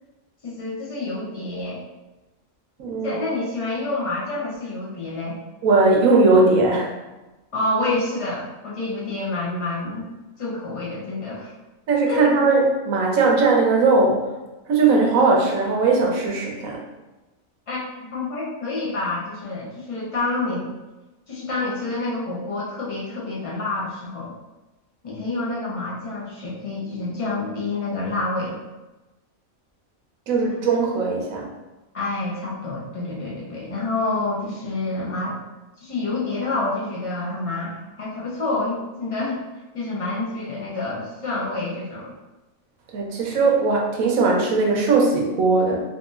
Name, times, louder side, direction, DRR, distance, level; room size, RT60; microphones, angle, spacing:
voice 1, 0.4-1.8 3.0-5.4 7.5-10.1 10.4-11.5 12.1-12.3 17.7-20.6 21.3-24.3 25.0-28.6 31.9-35.4 35.8-39.4 39.7-42.1, left 2 dB, 35° left, -5 dB, 0.5 m, -28 dB
voice 2, 2.8-3.2 5.6-6.9 11.9-14.2 14.7-16.8 30.3-31.5 42.9-45.8, right 3 dB, 75° right, -1 dB, 1.1 m, -19 dB
3.7 x 2.6 x 2.4 m, 1.1 s
omnidirectional pair, 1.4 m